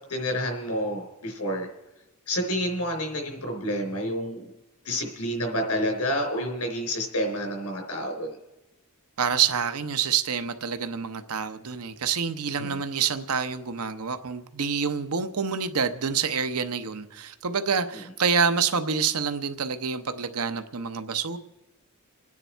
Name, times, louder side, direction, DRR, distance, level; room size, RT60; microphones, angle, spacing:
voice 1, 0.1-1.7 2.3-4.5 4.8-8.4 12.6-12.8, equal, 85° left, 4 dB, 3.9 m, -29 dB
voice 2, 9.2-21.4, right 6 dB, 80° right, 9 dB, 0.9 m, -27 dB
28.5 x 9.7 x 4.5 m, 1.0 s
head